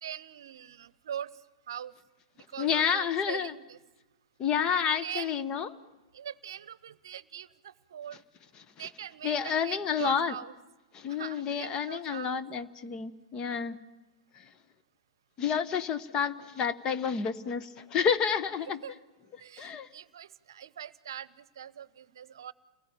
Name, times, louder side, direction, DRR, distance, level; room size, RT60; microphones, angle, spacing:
voice 1, 0.0-1.3 1.7-1.9 2.5-3.8 5.0-5.4 6.1-8.2 8.8-10.5 11.2-12.4 18.8-18.9 19.4-22.5, right 9 dB, 60° right, 20 dB, 0.8 m, -42 dB
voice 2, 2.6-3.5 4.4-5.7 8.5-8.9 9.2-10.3 10.9-13.8 15.4-18.8 19.6-19.9, left 7 dB, 30° left, 12 dB, 1.1 m, -30 dB
29.5 x 20.5 x 9.1 m, 1.1 s
figure-of-eight pair, 100°, 3 cm